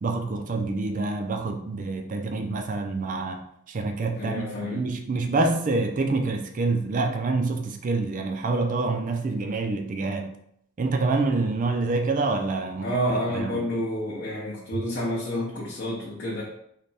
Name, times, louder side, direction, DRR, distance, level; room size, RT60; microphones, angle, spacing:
voice 1, 0.0-10.3 10.8-12.9 13.3-13.6, right 3 dB, 35° right, 5 dB, 0.4 m, -27 dB
voice 2, 4.2-4.8 12.8-16.4, equal, 50° left, -6 dB, 0.7 m, -29 dB
3.3 x 2.2 x 4.0 m, 0.73 s
head